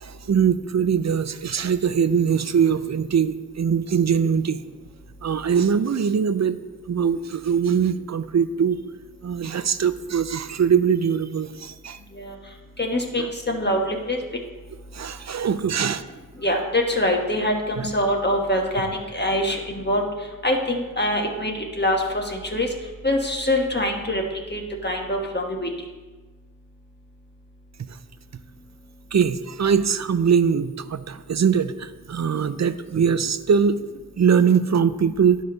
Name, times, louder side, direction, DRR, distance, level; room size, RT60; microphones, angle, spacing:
voice 1, 0.0-4.6 5.2-6.6 6.9-8.8 9.2-12.0 13.2-13.3 14.9-16.1 17.8-17.9 29.1-33.8 34.2-35.4, right 7 dB, 55° right, 13 dB, 0.5 m, -22 dB
voice 2, 12.8-14.2 16.4-20.0 20.4-22.7 23.0-24.2 24.5-25.7, left 1 dB, 30° left, 1 dB, 1.4 m, -24 dB
12.0 x 5.1 x 3.9 m, 1.3 s
wide cardioid pair, 55°, 33 cm